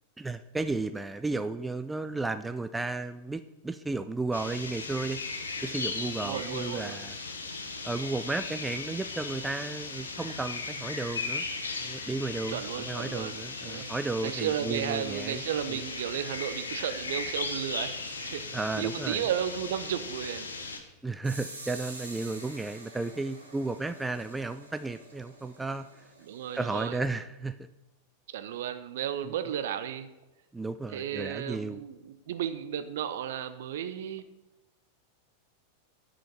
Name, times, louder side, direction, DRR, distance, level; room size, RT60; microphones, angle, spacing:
voice 1, 0.2-5.2 5.6-7.2 7.8-11.4 11.8-15.4 15.7-15.8 18.5-19.3 21.0-25.9 26.5-27.6 29.2-29.3 30.5-31.8, right 3 dB, 10° right, 11 dB, 0.3 m, -33 dB
sound 1, 4.3-20.8, left 3 dB, 75° left, 1.1 m, -37 dB
voice 2, 6.2-7.0 12.5-13.9 14.2-17.9 18.2-20.5 26.2-27.0 28.3-30.1 30.9-34.2, right 9 dB, 55° right, 11 dB, 0.6 m, -34 dB
sound 2, 21.2-26.9, right 2 dB, 80° right, 2.0 m, -47 dB
10.0 x 5.1 x 5.3 m, 0.96 s
figure-of-eight pair, 90°, 0 cm